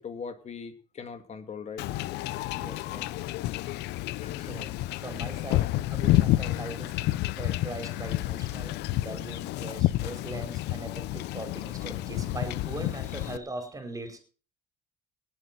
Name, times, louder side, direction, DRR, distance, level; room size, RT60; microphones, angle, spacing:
voice 1, 0.0-1.8 4.0-4.6, left 5 dB, 40° left, 8 dB, 2.6 m, -41 dB
Wind / Ocean / Boat Water vehicle, 1.8-13.4, left 16 dB, 85° left, 0.7 m, -30 dB
voice 2, 2.5-3.2 4.2-7.0 7.4-14.2, right 2 dB, 20° right, 7 dB, 4.7 m, -40 dB
18.5 x 8.1 x 6.1 m, 0.38 s
cardioid pair, 110°, 17 cm